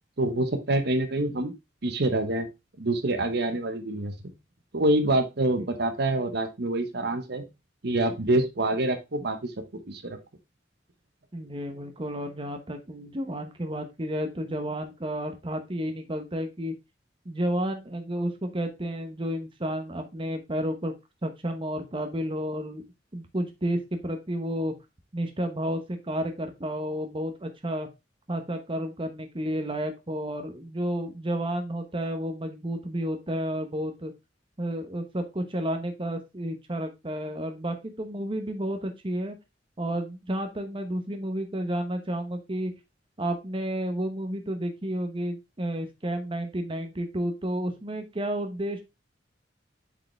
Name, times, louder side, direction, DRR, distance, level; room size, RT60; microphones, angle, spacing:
voice 1, 0.2-1.5 1.8-2.5 2.8-4.1 4.7-7.4 7.8-9.5 9.9-10.2, right 1 dB, 60° right, 8 dB, 1.0 m, -26 dB
voice 2, 11.3-16.7 17.2-20.9 21.2-22.8 23.1-24.7 25.1-27.9 28.3-34.1 34.6-39.4 39.8-42.7 43.2-48.8, right 1 dB, 30° right, 6 dB, 1.0 m, -31 dB
7.8 x 4.9 x 3.2 m, 0.23 s
head